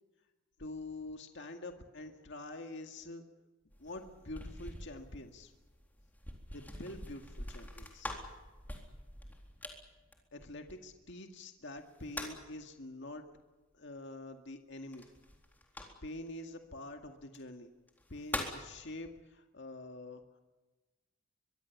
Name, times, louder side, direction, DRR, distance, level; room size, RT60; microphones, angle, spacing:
voice 1, 0.6-3.2 3.8-5.5 6.5-8.1 10.3-13.2 13.7-15.0 16.0-17.7 18.1-20.2, left 2 dB, 60° left, 4 dB, 2.0 m, -46 dB
sound 1, 3.7-11.1 11.8-12.6 14.9-16.3 17.2-17.4 17.9-18.7, left 1 dB, 10° left, 3.9 m, -45 dB
24.0 x 23.0 x 7.3 m, 1.2 s
head